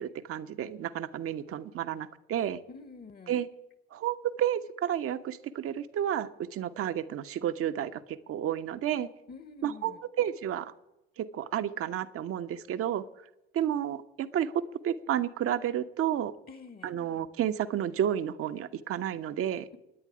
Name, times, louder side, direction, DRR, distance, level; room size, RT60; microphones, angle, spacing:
voice 1, 0.0-2.6 3.3-3.5 3.9-9.1 9.6-10.7 11.2-13.0 13.5-16.3 16.8-19.8, right 10 dB, 50° right, 10 dB, 1.1 m, -31 dB
voice 2, 2.7-3.4 9.3-10.0 16.5-17.0, left 4 dB, 30° left, 13 dB, 1.3 m, -48 dB
27.5 x 10.0 x 5.0 m, 0.96 s
figure-of-eight pair, 55°, 30 cm